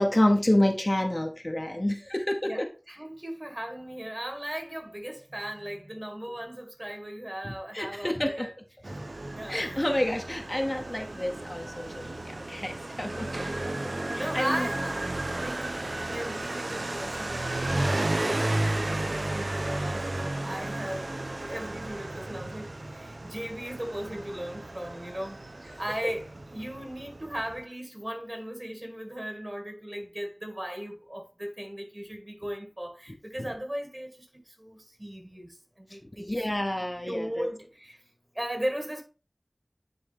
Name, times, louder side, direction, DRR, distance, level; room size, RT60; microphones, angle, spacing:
voice 1, 0.0-2.7 7.4-8.5 9.5-13.3 13.6-13.9 14.2-14.7 25.7-25.8 33.4-33.5 35.9-37.5, left 1 dB, 30° left, 0.8 m, -28 dB
voice 2, 2.4-8.5 9.3-9.8 11.9-12.1 13.4-13.7 14.2-15.6 16.1-21.1 21.4-25.4 25.8-36.4 37.1-38.0 38.3-39.0, equal, 35° right, 2.0 m, -37 dB
Motorcycle, 8.8-27.6, right 2 dB, 65° right, 0.4 m, -33 dB
9.8 x 3.4 x 3.4 m
wide cardioid pair, 45°, 0 cm